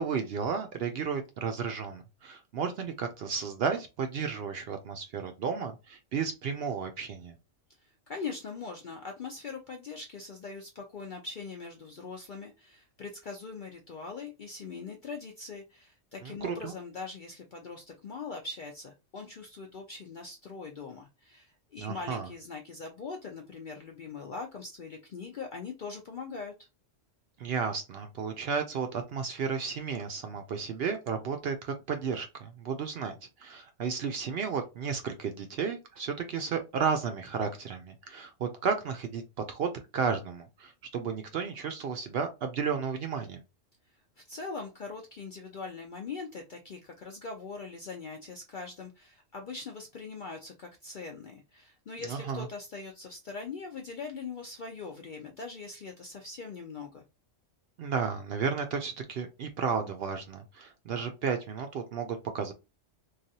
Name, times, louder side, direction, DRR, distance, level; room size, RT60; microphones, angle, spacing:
voice 1, 0.0-7.4 16.2-16.7 21.8-22.3 27.4-33.1 33.4-39.2 39.5-43.4 52.0-52.5 57.8-62.5, right 6 dB, 65° right, 6 dB, 0.7 m, -33 dB
voice 2, 7.8-26.7 44.3-57.0, left 4 dB, 60° left, 2 dB, 0.5 m, -41 dB
3.2 x 2.4 x 2.7 m, 0.26 s
omnidirectional pair, 1.3 m